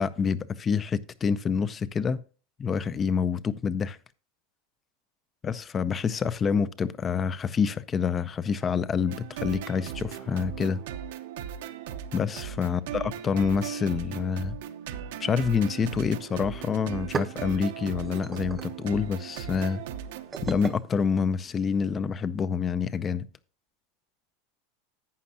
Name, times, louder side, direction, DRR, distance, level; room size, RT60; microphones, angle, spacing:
voice 1, 0.0-2.2 2.6-4.0 5.4-10.8 12.1-14.6 15.2-19.8 20.4-23.3, left 6 dB, 20° left, 0.5 m, -27 dB
sound 1, 9.1-20.8, right 9 dB, 75° right, 0.8 m, -38 dB
sound 2, 16.9-22.0, right 5 dB, 15° right, 0.6 m, -39 dB
11.5 x 8.6 x 2.8 m
supercardioid pair, 145°, 0 cm